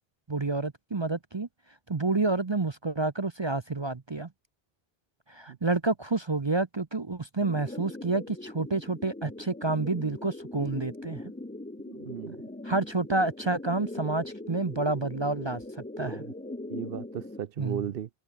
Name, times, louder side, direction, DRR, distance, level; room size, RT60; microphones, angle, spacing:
voice 1, 0.3-1.5 1.9-4.3 5.3-11.3 12.6-16.2 17.6-17.9, right 3 dB, 30° right, 0.7 m, -29 dB
sound 1, 7.4-17.4, left 2 dB, 10° left, 0.6 m, -41 dB
voice 2, 11.9-12.4 16.1-16.2 16.7-18.1, right 10 dB, 65° right, 0.9 m, -36 dB
open air
omnidirectional pair, 1.0 m